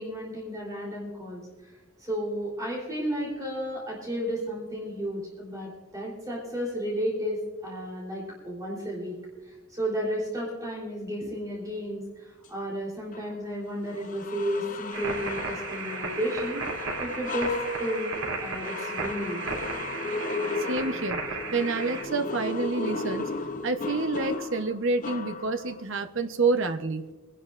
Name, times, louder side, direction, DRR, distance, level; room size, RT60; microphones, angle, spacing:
voice 1, 0.0-1.7 2.0-17.5 17.8-19.4, equal, 15° right, -5 dB, 3.5 m, -33 dB
sound 1, 13.1-13.3 13.9-25.8, left 3 dB, 35° left, 0.7 m, -35 dB
sound 2, 14.9-22.0, right 3 dB, 80° right, 3.1 m, -35 dB
voice 2, 20.6-21.2 21.5-23.3 23.6-27.0, right 3 dB, 60° right, 8 dB, 0.9 m, -28 dB
25.0 x 11.0 x 2.5 m, 1.2 s
head